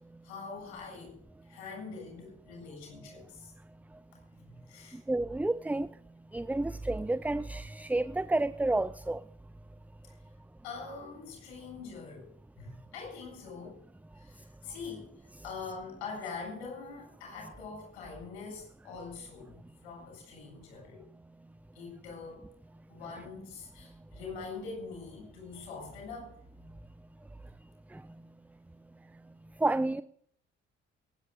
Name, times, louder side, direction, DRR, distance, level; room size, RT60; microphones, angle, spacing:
voice 1, 0.2-1.2 1.4-3.5 4.3-5.0 10.0-10.2 10.6-13.8 14.1-21.0 21.7-22.5 22.9-26.4, left 4 dB, 75° left, 0 dB, 7.7 m, -44 dB
voice 2, 5.1-5.9 6.3-9.2 27.9-28.0 29.6-30.0, right 2 dB, 5° right, 16 dB, 0.5 m, -30 dB
22.0 x 19.0 x 2.5 m, 0.65 s
figure-of-eight pair, 45°, 33 cm